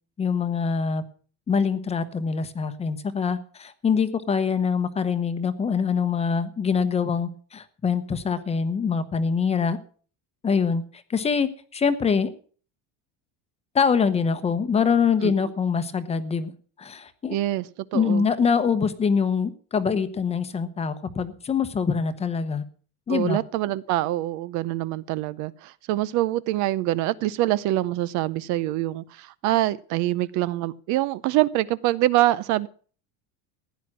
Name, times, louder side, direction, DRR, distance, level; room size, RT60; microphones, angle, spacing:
voice 1, 0.2-1.0 1.5-9.8 10.4-10.8 11.1-12.3 13.7-16.5 16.8-17.4 17.9-22.6 23.1-23.4, left 6 dB, 15° left, 11 dB, 0.9 m, -24 dB
voice 2, 17.3-17.7 17.9-18.2 23.1-32.7, right 15 dB, 50° right, 18 dB, 0.6 m, -25 dB
15.5 x 10.5 x 6.1 m, 0.43 s
cardioid pair, 170°, 36 cm